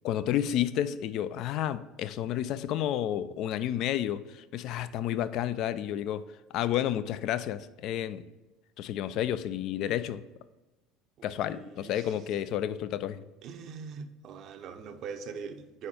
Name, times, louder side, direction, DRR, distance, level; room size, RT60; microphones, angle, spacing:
voice 1, 0.0-6.2 6.5-8.2 8.8-10.2 11.2-13.2, left 11 dB, 60° left, 13 dB, 0.3 m, -31 dB
voice 2, 13.4-15.9, right 5 dB, 55° right, 7 dB, 0.6 m, -41 dB
4.6 x 4.2 x 5.0 m, 1.1 s
hypercardioid pair, 75°, 0 cm